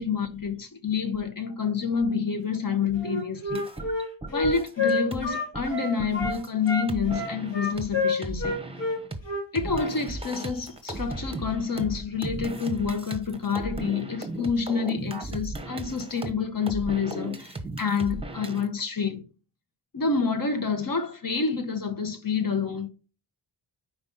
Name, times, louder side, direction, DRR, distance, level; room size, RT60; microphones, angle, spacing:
voice 1, 0.0-3.7 4.3-8.6 9.5-19.3 19.9-22.9, left 5 dB, 45° left, 1.1 m, -28 dB
Wind instrument woodwind instrument, 3.0-6.4 6.7-9.9, left 2 dB, 70° left, 2.3 m, -28 dB
sound 1, 3.5-7.9 8.2-9.2 9.6-18.7, right 2 dB, 10° right, 1.0 m, -36 dB
5.3 x 4.8 x 4.0 m
wide cardioid pair, 85°, 46 cm